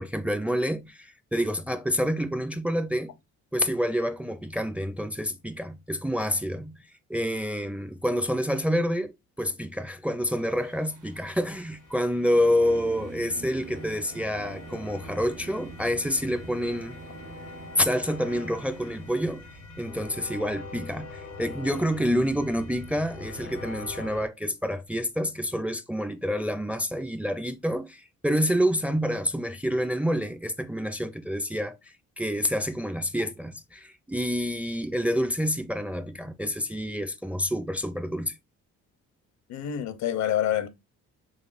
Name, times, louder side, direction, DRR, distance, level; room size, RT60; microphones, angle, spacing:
voice 1, 0.0-3.1 3.5-6.8 7.1-17.0 17.8-19.5 19.8-31.7 32.2-38.3, equal, 5° right, 0.4 m, -28 dB
Singing / Musical instrument, 10.2-19.8, right 4 dB, 90° right, 0.8 m, -46 dB
sound 1, 11.1-24.3, left 3 dB, 85° left, 1.0 m, -44 dB
voice 2, 39.5-40.7, left 10 dB, 65° left, 0.7 m, -27 dB
4.0 x 3.3 x 2.4 m
cardioid pair, 90°, 30 cm